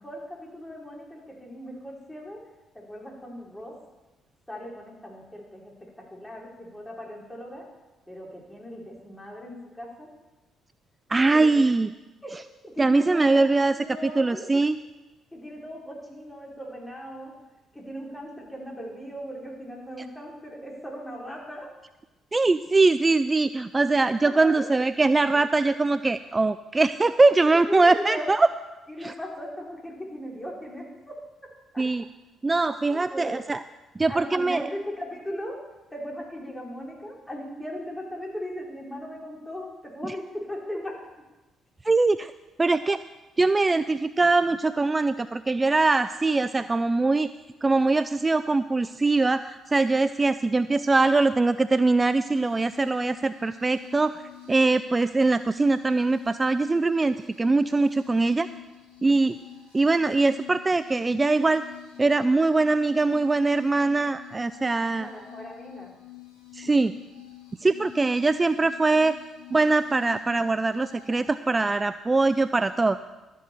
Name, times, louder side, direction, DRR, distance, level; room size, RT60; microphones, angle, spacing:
voice 1, 0.0-2.4 2.7-3.7 4.5-7.7 8.1-10.1 11.2-11.6 12.2-12.4 12.6-13.4 13.7-14.5 15.3-17.3 17.7-21.7 24.2-24.7 25.3-25.4 27.4-28.3 28.9-31.1 31.7-31.8 32.9-33.4 34.1-35.6 35.9-40.9 42.6-42.8 65.0-66.0, equal, 15° left, -2 dB, 4.3 m, -38 dB
voice 2, 11.1-11.9 12.8-13.8 14.2-14.8 22.3-28.5 29.0-29.1 31.8-32.0 32.4-33.6 34.0-34.7 41.8-42.3 42.6-43.0 43.4-47.3 47.6-54.2 54.5-58.5 59.0-59.4 59.7-61.6 62.0-65.1 66.5-66.9 67.6-69.2 69.5-73.0, right 3 dB, 25° right, 13 dB, 0.4 m, -22 dB
sound 1, 52.2-71.1, left 14 dB, 80° left, 3.1 m, -47 dB
12.5 x 7.6 x 6.9 m, 1.1 s
hypercardioid pair, 50°, 0 cm